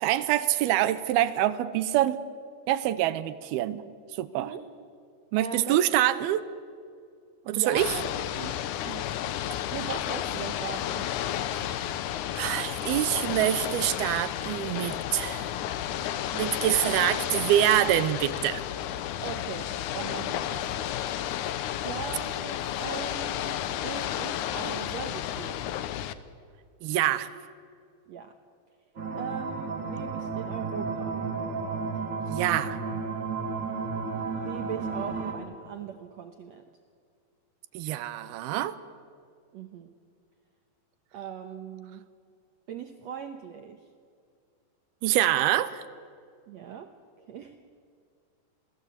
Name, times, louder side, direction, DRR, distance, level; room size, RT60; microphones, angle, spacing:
voice 1, 0.0-2.2 2.7-3.8 4.1-4.5 5.3-6.5 7.5-8.0 11.5-11.6 12.4-15.5 16.3-18.6 26.8-27.3 32.3-32.8 37.7-38.8 45.0-45.8, right 13 dB, 85° right, 14 dB, 2.8 m, -25 dB
voice 2, 5.4-5.8 7.5-8.1 8.4-9.1 9.7-11.1 19.2-20.9 21.8-25.7 28.1-28.4 29.2-31.2 34.3-36.7 39.5-39.9 41.1-42.0 42.7-43.8 46.5-46.9 47.3-47.6, right 7 dB, 70° right, 5 dB, 1.7 m, -39 dB
Ocean / Boat Water vehicle, 7.8-26.1, left 11 dB, 75° left, 1.9 m, -32 dB
sound 1, 29.0-35.3, right 4 dB, 35° right, 2.0 m, -32 dB
28.0 x 18.0 x 8.3 m, 2.2 s
omnidirectional pair, 4.4 m